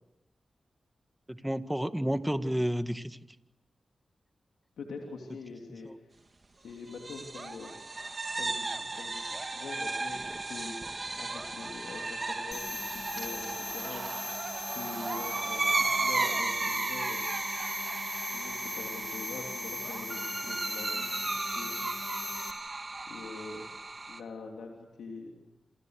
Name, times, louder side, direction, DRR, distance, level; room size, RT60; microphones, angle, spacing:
voice 1, 1.3-3.2 5.9-6.0, equal, 5° right, 10 dB, 1.9 m, -31 dB
voice 2, 4.8-6.1 6.6-7.7 8.3-10.2 10.5-10.8 11.2-14.2 14.7-17.4 18.3-21.7 23.1-23.6 24.1-25.3, left 4 dB, 90° left, 1 dB, 3.1 m, -44 dB
sound 1, 6.9-24.2, right 3 dB, 40° right, 2.6 m, -35 dB
Screaming, 12.0-16.4, right 4 dB, 60° right, 2.0 m, -43 dB
sound 2, 12.5-22.5, left 3 dB, 40° left, 3.0 m, -39 dB
28.5 x 28.0 x 6.7 m, 0.97 s
cardioid pair, 45°, 0 cm